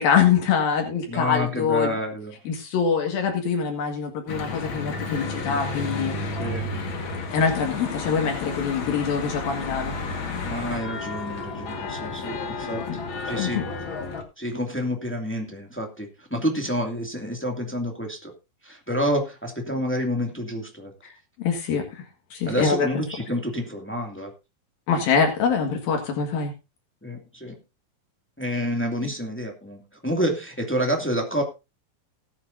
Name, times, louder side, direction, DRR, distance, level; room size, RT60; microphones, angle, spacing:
voice 1, 0.0-2.0 2.5-6.4 7.3-10.0 12.9-13.0 13.4-13.6 21.0-21.1 21.4-22.1 22.3-22.9 24.9-26.5 29.0-29.1, left 6 dB, 75° left, 3 dB, 3.7 m, -24 dB
voice 2, 1.1-2.3 6.4-6.7 10.5-13.6 14.4-18.3 18.6-20.9 22.5-24.3 27.0-27.6 28.4-31.4, equal, 5° left, 2 dB, 1.4 m, -28 dB
Church bell / Traffic noise roadway noise, 4.3-14.2, left 3 dB, 45° left, 1.9 m, -31 dB
19.0 x 9.0 x 2.7 m, 0.27 s
omnidirectional pair, 4.2 m